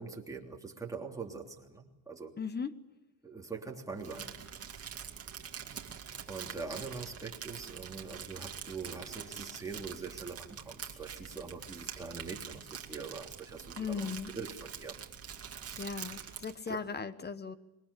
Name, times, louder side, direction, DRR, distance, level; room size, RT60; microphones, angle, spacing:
voice 1, 0.0-2.4 3.2-4.4 4.9-5.0 6.3-15.0 15.9-16.2 16.7-16.8, right 4 dB, 5° right, 0 dB, 3.2 m, -43 dB
voice 2, 2.4-2.8 13.8-14.3 15.8-17.5, left 5 dB, 20° left, 14 dB, 1.1 m, -37 dB
Crumpling crinkling, 4.0-16.6, right 7 dB, 30° right, 2.4 m, -45 dB
26.5 x 22.5 x 8.5 m, 1.0 s
cardioid pair, 160°, 49 cm